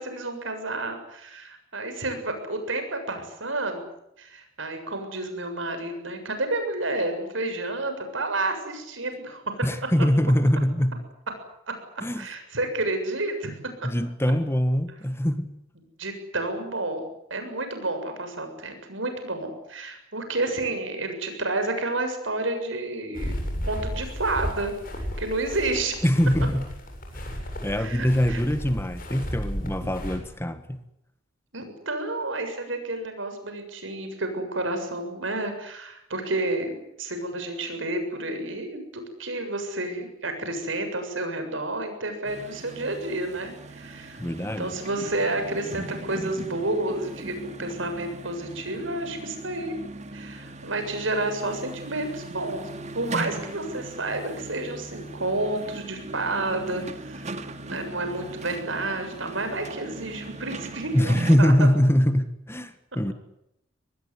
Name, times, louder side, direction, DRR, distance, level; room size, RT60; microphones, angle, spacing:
voice 1, 0.0-3.8 4.2-9.6 10.2-10.3 12.2-13.5 16.0-23.4 23.7-26.0 27.7-28.4 31.5-49.7 50.1-57.3 57.7-61.5, right 2 dB, 75° right, 7.3 m, -30 dB
voice 2, 9.6-11.0 12.0-12.3 13.8-15.6 26.0-26.7 27.1-27.3 27.6-30.8 44.2-44.8 60.9-63.1, equal, 15° left, 1.6 m, -23 dB
sound 1, 23.1-30.2, equal, 45° left, 7.9 m, -33 dB
sound 2, 42.2-61.4, right 2 dB, 35° right, 2.4 m, -39 dB
25.0 x 19.5 x 9.7 m
head